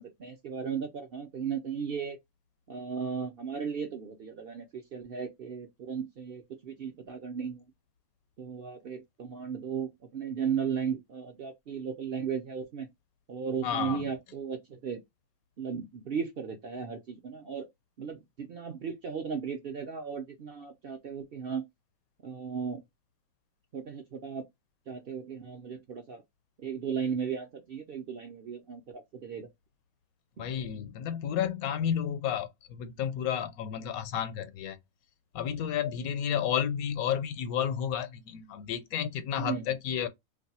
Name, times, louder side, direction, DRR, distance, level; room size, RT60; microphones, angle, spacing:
voice 1, 0.0-2.2 2.7-7.7 8.4-12.9 13.3-15.0 15.6-17.7 18.0-21.7 22.2-22.8 23.7-24.4 24.9-26.2 26.6-29.5 30.4-30.5 39.4-39.8, right 7 dB, 55° right, 0.6 m, -36 dB
voice 2, 13.6-14.1 30.4-34.8 35.3-40.1, left 9 dB, 80° left, 1.1 m, -31 dB
2.6 x 2.2 x 4.0 m
omnidirectional pair, 1.5 m